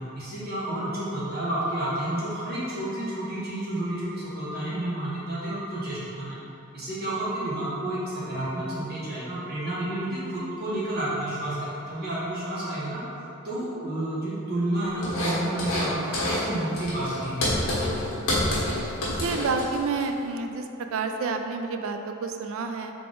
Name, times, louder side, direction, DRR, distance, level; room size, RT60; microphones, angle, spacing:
voice 1, 0.1-6.4 6.7-13.0 13.4-17.8, right 1 dB, 45° right, -9 dB, 1.0 m, -30 dB
sound 1, 15.0-15.9 16.1-16.5 16.7-20.0, left 1 dB, 75° left, 1.3 m, -27 dB
voice 2, 19.1-20.7 20.9-22.9, right 4 dB, 65° right, 5 dB, 0.3 m, -29 dB
3.9 x 3.4 x 3.7 m, 2.8 s
head